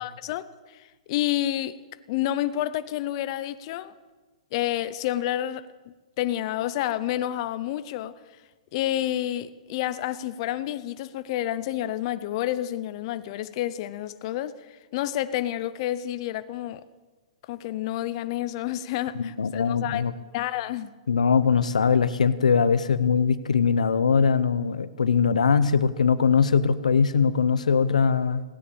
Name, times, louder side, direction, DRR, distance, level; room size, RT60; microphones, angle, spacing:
voice 1, 0.0-1.8 2.1-3.9 4.5-8.2 8.7-16.8 17.5-20.1 20.3-20.9, left 13 dB, 50° left, 0.7 m, -29 dB
voice 2, 19.2-20.1 21.1-28.4, left 6 dB, 90° left, 0.8 m, -21 dB
16.5 x 9.9 x 8.6 m
hypercardioid pair, 130°, 4 cm